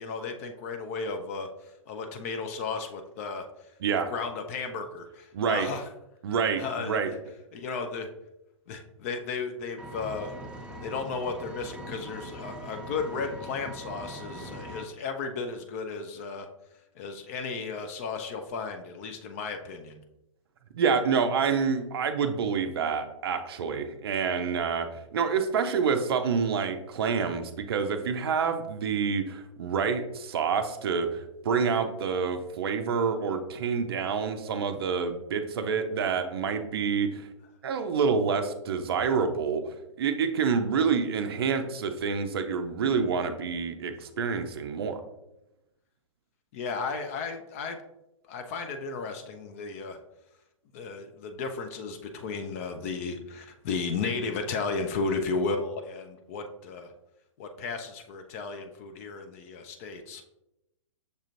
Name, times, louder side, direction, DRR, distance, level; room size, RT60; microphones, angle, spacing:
voice 1, 0.0-3.4 3.9-5.8 6.5-7.1 7.5-8.1 8.7-10.4 10.8-16.5 17.0-20.0 46.5-47.8 48.3-50.0 50.7-56.9 57.4-60.2, left 4 dB, 25° left, 6 dB, 0.3 m, -34 dB
voice 2, 5.3-5.7 6.2-7.1 20.7-37.3 37.6-39.6 40.0-45.0, right 6 dB, 50° right, 8 dB, 0.5 m, -27 dB
Engine, 9.8-14.8, right 1 dB, 5° right, 0.7 m, -41 dB
6.6 x 2.4 x 2.9 m, 0.88 s
figure-of-eight pair, 115°, 17 cm